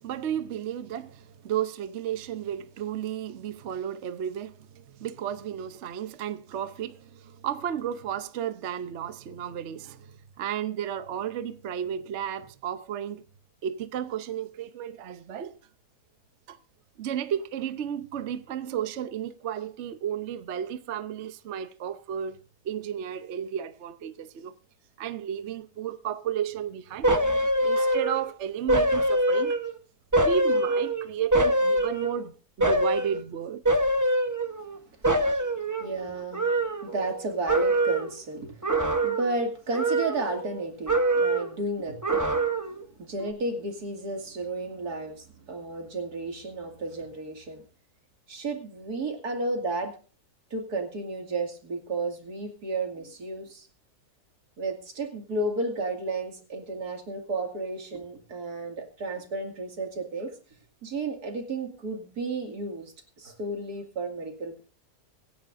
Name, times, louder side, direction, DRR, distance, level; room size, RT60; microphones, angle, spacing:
voice 1, 0.0-13.2 13.6-15.6 16.5-16.6 17.0-22.4 22.6-24.5 25.0-27.1 27.6-29.6 30.2-32.3 32.6-33.6 35.1-35.3, right 9 dB, 55° right, 0.9 m, -33 dB
sound 1, 27.0-28.3 28.7-29.8 30.1-32.2 32.6-33.2 33.6-34.8 35.0-37.2 37.5-38.2 38.6-39.4 39.7-40.6 40.9-41.6 42.0-42.8 43.2-43.3, right 1 dB, 15° right, 0.8 m, -24 dB
voice 2, 35.8-42.3 42.7-47.6 48.3-49.9 50.5-53.7 54.6-60.3 60.8-64.6, right 2 dB, 85° right, 2.8 m, -33 dB
24.0 x 10.5 x 2.6 m
omnidirectional pair, 1.6 m